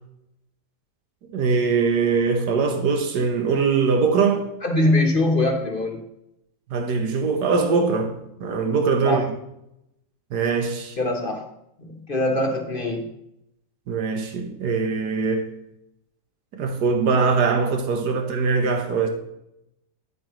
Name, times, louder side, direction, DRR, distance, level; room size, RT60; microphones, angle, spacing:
voice 1, 1.3-4.5 6.7-9.2 10.3-11.0 13.9-15.5 16.5-19.1, right 5 dB, 80° right, 1.7 m, -22 dB
voice 2, 4.6-6.0 9.0-9.2 11.0-11.4 11.8-13.0, left 1 dB, 40° left, 1.0 m, -22 dB
9.2 x 8.7 x 3.1 m
omnidirectional pair, 1.7 m